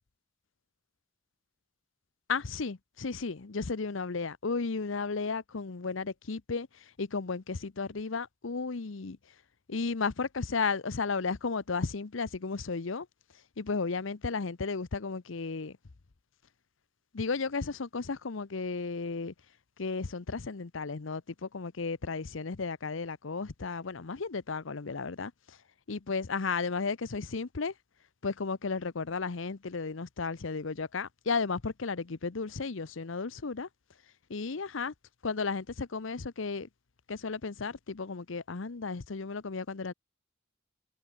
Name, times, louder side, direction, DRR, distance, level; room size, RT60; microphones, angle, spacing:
voice 1, 2.3-6.7 7.0-9.2 9.7-13.1 13.6-15.8 17.1-19.3 19.8-25.6 25.9-27.7 28.2-33.7 34.3-34.9 35.2-36.7 37.1-39.9, left 4 dB, 75° left, 0.8 m, -34 dB
head